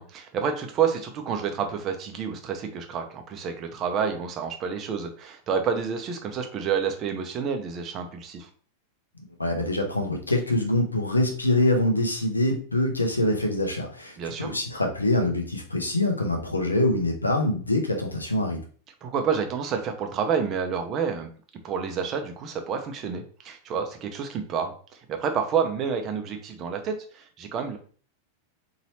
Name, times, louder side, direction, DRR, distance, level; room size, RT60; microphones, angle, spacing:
voice 1, 0.0-8.5 14.2-14.5 19.0-21.3 21.6-27.8, right 6 dB, 35° right, 5 dB, 0.7 m, -29 dB
voice 2, 9.4-18.6, left 1 dB, 80° left, 3 dB, 0.8 m, -24 dB
4.1 x 2.9 x 2.8 m, 0.42 s
figure-of-eight pair, 90°, 0 cm